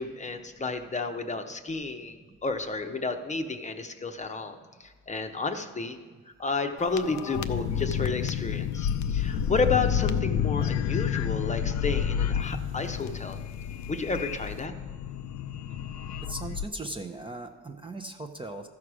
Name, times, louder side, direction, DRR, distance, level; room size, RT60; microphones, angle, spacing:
voice 1, 0.0-6.0 6.4-13.4 13.9-14.7, left 4 dB, 25° left, 5 dB, 0.7 m, -31 dB
sound 1, 6.8-16.6, left 8 dB, 65° left, 0.5 m, -30 dB
voice 2, 16.3-18.7, right 2 dB, 15° right, 5 dB, 0.6 m, -38 dB
13.5 x 4.8 x 6.1 m, 1.4 s
cardioid pair, 90°, 30 cm